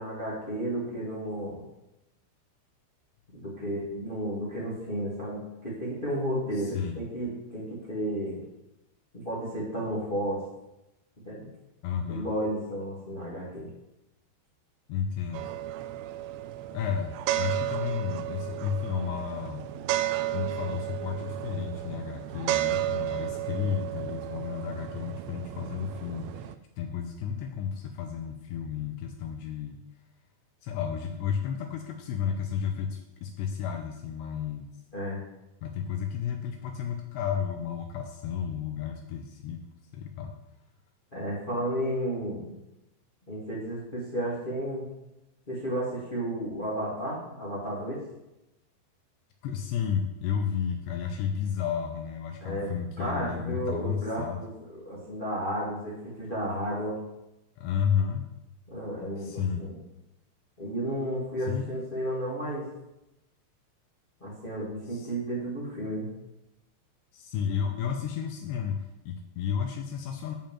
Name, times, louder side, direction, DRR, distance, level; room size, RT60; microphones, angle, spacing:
voice 1, 0.0-1.6 3.3-8.4 9.1-10.4 11.2-11.5 12.1-13.7 34.9-35.2 41.1-42.6 43.3-44.9 45.5-48.0 52.4-54.5 54.8-57.0 58.7-59.8 60.6-62.6 64.2-66.1, right 1 dB, 20° left, -6 dB, 1.4 m, -32 dB
voice 2, 6.5-7.0 11.8-12.3 14.9-15.5 16.7-19.7 20.3-29.8 30.6-34.7 35.6-39.6 39.9-40.3 49.4-54.4 57.6-58.2 59.2-59.7 61.5-61.7 64.9-65.1 67.1-70.4, left 7 dB, 85° left, 5 dB, 2.7 m, -32 dB
sound 1, 15.3-26.6, right 14 dB, 85° right, 2.9 m, -33 dB
9.1 x 5.3 x 7.3 m, 0.92 s
omnidirectional pair, 5.5 m